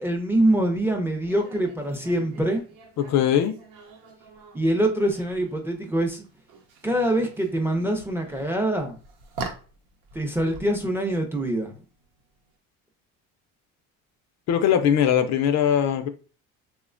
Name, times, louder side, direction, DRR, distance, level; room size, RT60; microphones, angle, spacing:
voice 1, 0.0-2.6 4.5-6.2 6.8-9.0 10.1-11.8, right 1 dB, 5° right, 3 dB, 0.5 m, -24 dB
sound 1, 1.2-12.5, right 4 dB, 85° right, 0.7 m, -44 dB
voice 2, 3.0-3.5 14.5-16.1, left 9 dB, 55° left, 7 dB, 0.5 m, -21 dB
2.9 x 2.1 x 2.4 m, 0.36 s
cardioid pair, 100°, 33 cm